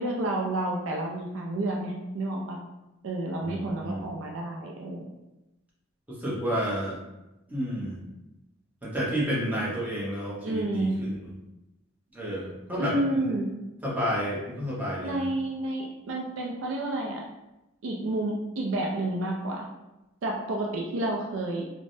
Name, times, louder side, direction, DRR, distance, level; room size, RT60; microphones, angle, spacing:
voice 1, 0.0-2.6 3.0-5.1 10.4-10.9 12.8-13.6 15.0-17.2 17.8-19.7 20.2-21.6, right 1 dB, 70° right, -1 dB, 0.4 m, -30 dB
voice 2, 3.4-4.0 6.1-7.0 7.5-8.0 8.8-11.2 12.1-13.3 13.8-15.3, equal, 10° right, -7 dB, 0.7 m, -30 dB
3.3 x 2.1 x 2.5 m, 0.97 s
head